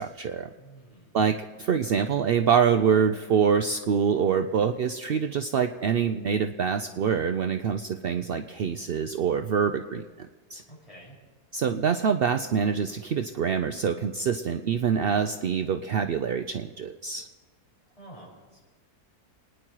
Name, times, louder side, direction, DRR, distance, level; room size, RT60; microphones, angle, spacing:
voice 1, 0.0-0.5 1.1-10.6 11.5-17.3, right 7 dB, 70° right, 8 dB, 0.5 m, -25 dB
voice 2, 0.6-1.1 10.7-11.2 17.9-18.7, right 1 dB, 20° left, -5 dB, 6.1 m, -49 dB
28.5 x 10.0 x 4.6 m, 1.3 s
omnidirectional pair, 1.6 m